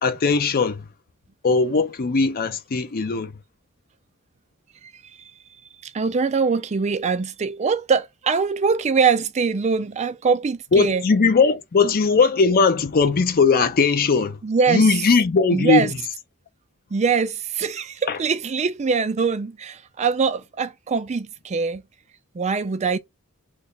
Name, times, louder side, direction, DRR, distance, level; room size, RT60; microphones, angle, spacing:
voice 1, 0.0-0.8 1.4-3.3 10.7-14.4 14.7-15.9 18.1-18.2, left 4 dB, 40° left, 0.5 m, -19 dB
voice 2, 4.8-5.3 5.8-11.1 11.8-11.9 14.4-15.0 15.5-15.9 16.9-21.8 22.3-23.0, right 5 dB, 30° right, 0.4 m, -23 dB
3.1 x 2.1 x 3.8 m
head